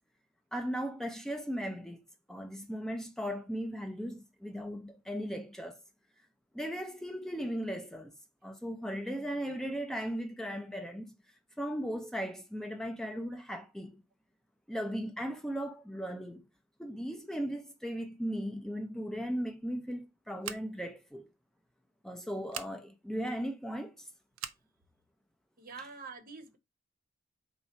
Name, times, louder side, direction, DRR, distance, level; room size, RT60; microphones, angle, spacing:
voice 1, 0.5-2.0 2.3-5.8 6.5-8.1 8.4-11.1 11.6-14.0 14.7-16.5 16.8-21.3 22.0-24.1 25.8-25.9, equal, ahead, 0.5 m, -37 dB
Scissors, 20.4-20.9 22.5-22.7 24.3-24.6, right 10 dB, 85° right, 0.5 m, -41 dB
voice 2, 25.6-26.6, right 4 dB, 45° right, 0.7 m, -46 dB
4.1 x 2.4 x 4.1 m
head